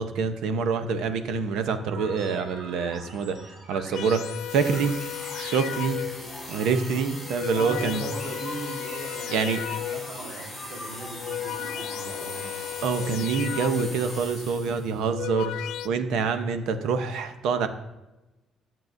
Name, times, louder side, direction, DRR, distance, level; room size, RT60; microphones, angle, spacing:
voice 1, 0.0-3.4 3.7-5.0 5.4-6.0 6.5-8.0 9.3-9.6 12.8-17.7, right 5 dB, 75° right, 9 dB, 0.7 m, -26 dB
sound 1, 1.9-14.2, right 1 dB, 30° right, 2.3 m, -44 dB
sound 2, 3.9-6.4 7.1-10.3 11.0-14.2 14.9-15.9, left 12 dB, 85° left, 0.4 m, -35 dB
sound 3, 4.5-15.0, left 2 dB, ahead, 1.4 m, -41 dB
voice 2, 7.5-12.7, right 2 dB, 50° right, 1 dB, 1.4 m, -39 dB
12.0 x 7.3 x 2.6 m, 1.0 s
cardioid pair, 180°, 0 cm